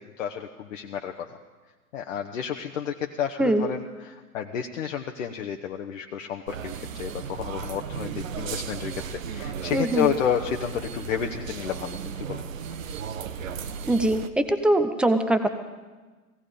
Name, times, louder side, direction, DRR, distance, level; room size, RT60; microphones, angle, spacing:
voice 1, 0.2-1.4 1.9-12.0 12.3-12.4, left 8 dB, 60° left, 3 dB, 1.0 m, -30 dB
sound 1, 6.5-14.3, right 7 dB, 60° right, 0.9 m, -35 dB
voice 2, 9.7-10.1 13.9-15.5, right 1 dB, ahead, 8 dB, 0.5 m, -22 dB
17.0 x 16.5 x 5.1 m, 1.3 s
figure-of-eight pair, 95°, 44 cm